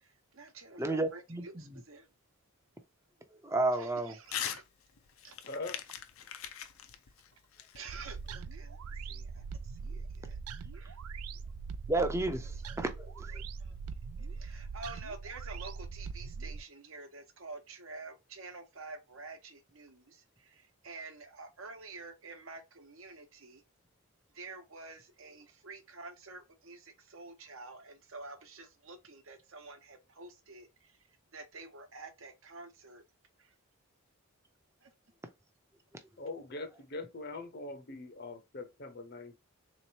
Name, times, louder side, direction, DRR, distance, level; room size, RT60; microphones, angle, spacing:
voice 1, 0.0-2.1 3.7-4.6 5.2-5.4 7.7-10.4 10.7-11.0 13.6-13.7 14.2-23.6 24.3-31.0 31.3-33.0 33.4-33.5 34.8-34.9, right 3 dB, 65° right, 0.9 m, -49 dB
voice 2, 0.8-1.8 3.4-4.1 11.9-13.4, right 2 dB, 15° right, 0.5 m, -32 dB
Crumpling crinkling / Tearing, 4.3-4.6 5.0-8.3, left 9 dB, 75° left, 0.6 m, -41 dB
voice 3, 5.5-5.8 36.2-39.4, left 2 dB, 50° left, 0.7 m, -42 dB
sound 1, 7.9-16.6, right 5 dB, 90° right, 0.4 m, -42 dB
3.8 x 3.0 x 2.7 m
head